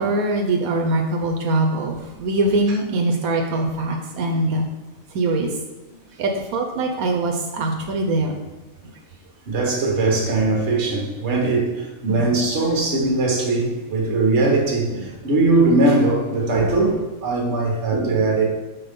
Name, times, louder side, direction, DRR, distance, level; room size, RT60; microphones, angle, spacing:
voice 1, 0.0-4.6 5.1-5.5 6.2-8.3 12.1-12.3, right 2 dB, 85° right, 1.2 m, -22 dB
voice 2, 9.5-18.4, right 2 dB, 55° right, 1.5 m, -20 dB
6.1 x 4.3 x 5.2 m
omnidirectional pair, 1.5 m